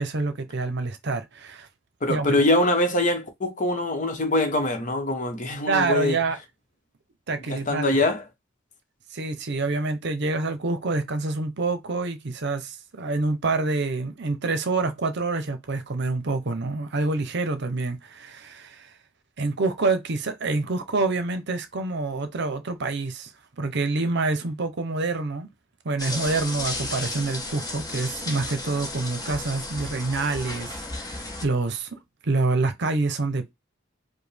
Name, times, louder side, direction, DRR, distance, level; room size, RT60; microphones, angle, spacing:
voice 1, 0.0-1.7 2.1-2.4 5.7-6.4 7.3-7.8 9.1-18.9 19.4-23.3 23.6-25.5 25.8-33.5, right 3 dB, 60° right, 0.7 m, -27 dB
voice 2, 2.0-6.2 7.5-8.2, left 1 dB, 40° left, 1.0 m, -23 dB
sound 1, 26.0-31.5, left 2 dB, 20° left, 0.9 m, -34 dB
5.0 x 2.2 x 3.3 m
head